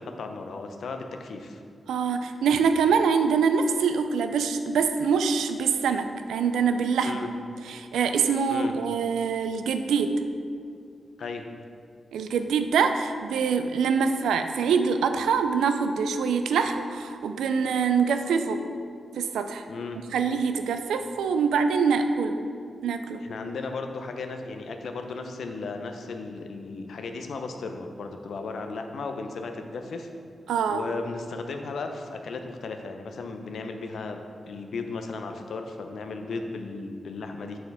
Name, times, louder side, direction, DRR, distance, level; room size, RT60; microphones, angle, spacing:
voice 1, 0.0-1.6 7.0-7.3 8.5-8.7 11.2-11.5 19.7-20.0 23.2-30.1 30.7-37.6, left 3 dB, 75° left, 5 dB, 0.5 m, -35 dB
voice 2, 1.9-7.2 7.7-10.1 12.1-18.6 19.2-19.6 20.1-22.4 22.8-23.2 30.5-30.8, right 6 dB, 85° right, 8 dB, 0.3 m, -24 dB
6.8 x 4.3 x 4.1 m, 2.3 s
supercardioid pair, 40°, 0 cm